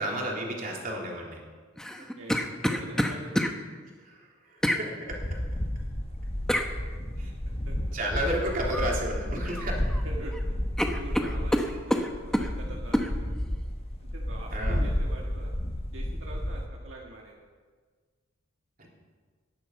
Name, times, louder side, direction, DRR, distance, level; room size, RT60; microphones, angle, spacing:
voice 1, 0.0-1.4 4.0-5.2 7.2-7.3 7.9-9.8 14.5-14.9 18.8-18.9, right 1 dB, 40° right, -2 dB, 3.4 m, -32 dB
sound 1, 1.8-3.5 4.6-4.8 6.5-6.7 8.7-9.0 9.3-10.0 10.3-10.4 10.8-12.5 12.9-13.1, equal, 5° left, 0.9 m, -27 dB
voice 2, 2.0-3.5 7.7-7.8 10.1-10.4 10.9-13.6 14.0-15.5 15.9-17.5, right 2 dB, 70° right, -2 dB, 1.8 m, -44 dB
sound 2, 5.1-16.7, equal, 30° left, 1.3 m, -32 dB
18.5 x 11.0 x 5.7 m, 1.5 s
head